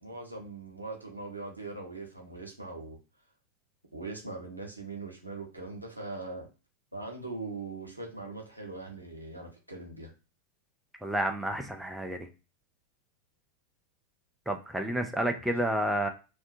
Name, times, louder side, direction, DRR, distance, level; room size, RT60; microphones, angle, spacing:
voice 1, 0.0-3.0 3.9-6.5 6.9-10.1 15.3-15.4, right 3 dB, 85° right, 0 dB, 0.8 m, -41 dB
voice 2, 11.0-12.3 14.5-16.1, right 1 dB, 5° right, 4 dB, 0.4 m, -30 dB
2.6 x 2.2 x 2.6 m, 0.32 s
figure-of-eight pair, 90°, 0 cm